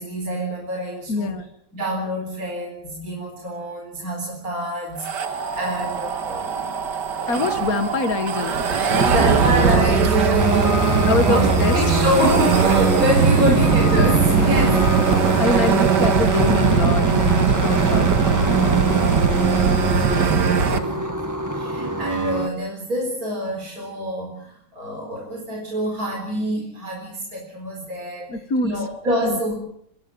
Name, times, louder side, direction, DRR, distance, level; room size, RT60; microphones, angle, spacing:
voice 1, 0.0-1.3 1.7-6.7 7.1-7.4 9.1-15.7 18.4-18.8 19.2-29.6, equal, 50° right, 1 dB, 4.8 m, -27 dB
voice 2, 1.1-1.4 7.3-9.3 11.1-11.8 13.4-13.6 14.4-14.8 15.3-19.2 28.3-28.7 29.2-29.4, left 3 dB, 55° left, 10 dB, 2.2 m, -25 dB
sound 1, 5.0-20.8, right 6 dB, 70° right, 2.2 m, -20 dB
sound 2, 9.0-15.4, right 2 dB, 35° left, 3.6 m, -25 dB
sound 3, 10.3-22.5, equal, 10° right, 1.8 m, -26 dB
25.0 x 20.0 x 7.1 m, 0.69 s
omnidirectional pair, 1.9 m